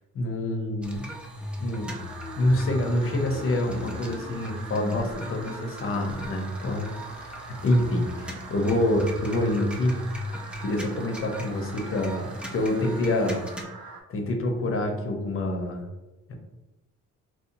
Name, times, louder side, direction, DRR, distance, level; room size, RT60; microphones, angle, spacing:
voice 1, 0.1-1.1 1.6-2.0 2.4-10.0 10.6-13.4 14.1-15.9 16.3-16.4, left 1 dB, 45° left, 3 dB, 0.7 m, -27 dB
sound 1, 0.8-13.6, equal, 5° right, 0.4 m, -38 dB
sound 2, 1.9-14.0, right 3 dB, 75° right, 0.5 m, -43 dB
2.9 x 2.1 x 2.5 m, 1.1 s
cardioid pair, 90°, 30 cm